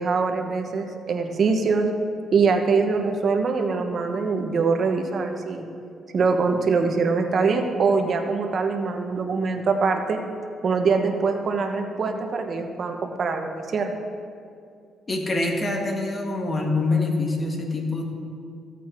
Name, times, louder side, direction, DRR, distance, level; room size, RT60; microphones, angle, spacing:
voice 1, 0.0-1.9 2.3-5.7 6.1-10.2 10.6-13.9, right 4 dB, 50° right, 4 dB, 1.2 m, -23 dB
voice 2, 15.1-18.0, left 2 dB, 35° left, 2 dB, 1.7 m, -25 dB
14.0 x 8.3 x 4.5 m, 2.4 s
cardioid pair, 90°, 0 cm